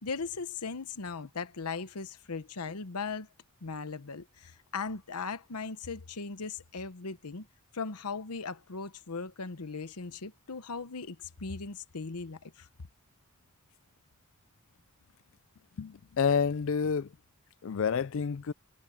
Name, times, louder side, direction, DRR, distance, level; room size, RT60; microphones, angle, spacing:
voice 1, 0.0-3.3 3.6-7.5 7.7-12.7, left 4 dB, 90° left, 1.0 m, -38 dB
voice 2, 15.8-17.1 17.6-18.5, left 6 dB, 60° left, 0.4 m, -29 dB
head